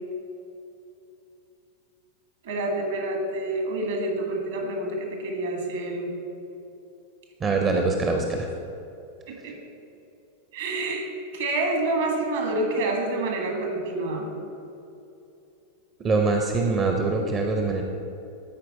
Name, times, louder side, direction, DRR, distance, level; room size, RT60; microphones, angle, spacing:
voice 1, 2.4-6.2 9.3-9.5 10.5-11.1 11.3-14.3, right 2 dB, 60° right, 2 dB, 1.6 m, -28 dB
voice 2, 7.4-8.5 16.0-17.8, right 3 dB, 25° right, 2 dB, 0.7 m, -23 dB
13.0 x 4.6 x 4.1 m, 2.7 s
figure-of-eight pair, 90°, 0 cm